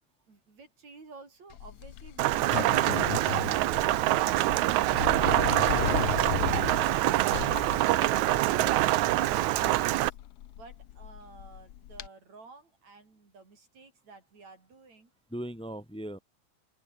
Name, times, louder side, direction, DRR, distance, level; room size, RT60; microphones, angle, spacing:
voice 1, 0.3-7.1 10.5-15.1, right 4 dB, 55° right, 6.7 m, -51 dB
Sliding door, 1.5-12.1, left 13 dB, 70° left, 1.4 m, -36 dB
Rain, 2.2-10.1, right 16 dB, 75° right, 2.0 m, -25 dB
voice 2, 15.3-16.2, right 1 dB, ahead, 3.6 m, -39 dB
open air
omnidirectional pair, 3.7 m